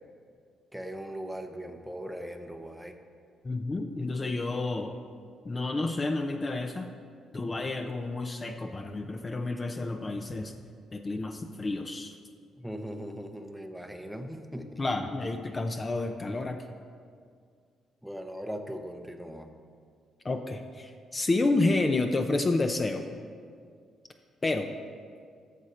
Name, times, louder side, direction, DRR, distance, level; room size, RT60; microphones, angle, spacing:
voice 1, 0.7-3.0 12.6-14.8 18.0-19.5, equal, ahead, 6 dB, 0.8 m, -39 dB
voice 2, 3.4-5.0 5.4-6.9 7.3-10.6 10.9-12.2 14.8-16.6 20.2-23.1 24.4-24.7, left 2 dB, 30° left, 6 dB, 0.6 m, -30 dB
13.5 x 6.4 x 4.3 m, 2.1 s
cardioid pair, 90°, 0 cm